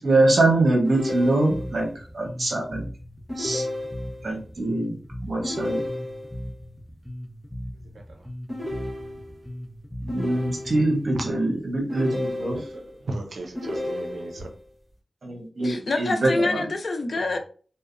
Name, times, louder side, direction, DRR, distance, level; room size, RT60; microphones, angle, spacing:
voice 1, 0.0-1.9 2.1-2.8 3.4-3.6 4.2-4.9 5.2-5.8 10.0-12.6 15.2-16.6, right 2 dB, 60° right, 0 dB, 0.9 m, -23 dB
sound 1, 0.8-1.9 3.3-4.3 5.4-6.5 8.5-9.5 10.1-11.0 11.9-12.9 13.5-14.6, left 1 dB, 25° right, 1.0 m, -33 dB
Bass guitar, 1.5-11.1, equal, 5° left, 0.4 m, -38 dB
voice 2, 7.7-8.3 11.1-11.2 12.5-14.5, right 2 dB, 75° right, 3 dB, 0.5 m, -36 dB
voice 3, 15.6-17.4, left 3 dB, 60° left, 5 dB, 0.4 m, -26 dB
2.6 x 2.0 x 2.4 m, 0.40 s
wide cardioid pair, 80°, 0 cm